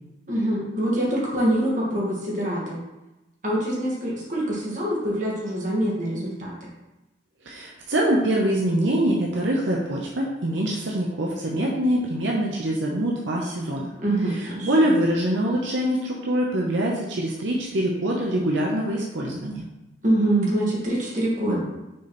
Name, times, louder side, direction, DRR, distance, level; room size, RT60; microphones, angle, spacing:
voice 1, 0.3-2.8 3.4-6.7 14.0-14.8 20.0-21.6, right 1 dB, 40° right, -5 dB, 2.1 m, -25 dB
voice 2, 7.4-13.9 14.3-19.6, right 1 dB, 80° right, -2 dB, 0.9 m, -24 dB
6.4 x 4.0 x 4.4 m, 1.0 s
head